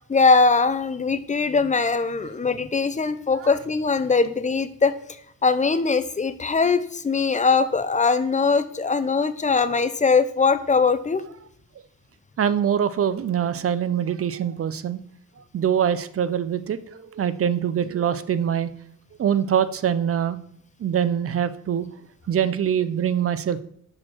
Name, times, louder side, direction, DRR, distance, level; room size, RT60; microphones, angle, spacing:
voice 1, 0.1-4.9 5.4-11.2, left 4 dB, 25° left, 12 dB, 0.5 m, -21 dB
voice 2, 12.4-15.0 15.5-18.7 19.2-20.4 20.8-21.9 22.3-23.6, right 8 dB, 45° right, 14 dB, 0.4 m, -23 dB
6.3 x 4.3 x 4.5 m, 0.67 s
cardioid pair, 80°, 31 cm